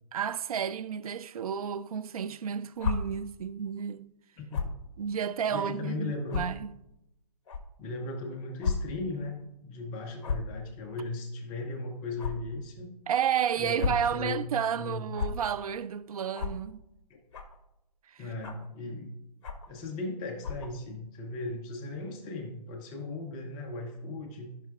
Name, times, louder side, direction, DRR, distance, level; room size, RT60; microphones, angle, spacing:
voice 1, 0.1-4.1 5.0-6.7 13.1-16.8 18.1-18.2, right 8 dB, 60° right, 0.4 m, -31 dB
sound 1, 2.8-2.9 4.5-4.8 5.5-5.6 6.3-6.4 7.5-7.6 8.6-8.8 9.1-9.2 10.2-10.5 12.2-12.3 13.6-14.0 15.1-15.3 16.3-16.5 17.3-17.6 18.4-18.7 19.4-19.7 20.4-20.7, left 6 dB, 45° left, 1.3 m, -31 dB
voice 2, 4.4-4.7 5.5-6.5 7.8-12.9 13.6-14.4 14.7-15.1 17.1-17.2 18.2-19.1 19.7-24.5, left 2 dB, 10° left, 0.4 m, -37 dB
15.5 x 5.6 x 2.3 m
hypercardioid pair, 155°, 21 cm